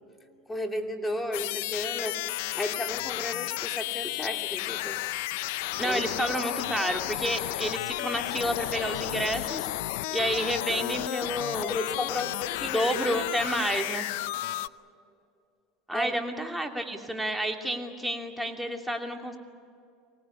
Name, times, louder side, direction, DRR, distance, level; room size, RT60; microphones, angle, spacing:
voice 1, 0.5-2.2 2.5-5.0 5.8-6.0 11.6-13.1 15.9-16.1, left 1 dB, 10° left, 4 dB, 2.5 m, -33 dB
sound 1, 1.3-14.7, left 17 dB, 75° left, 0.6 m, -32 dB
voice 2, 5.8-9.7 10.1-11.8 12.6-14.1 15.9-19.4, equal, 5° right, 3 dB, 2.8 m, -30 dB
24.5 x 19.0 x 9.8 m, 2.4 s
supercardioid pair, 105°, 0 cm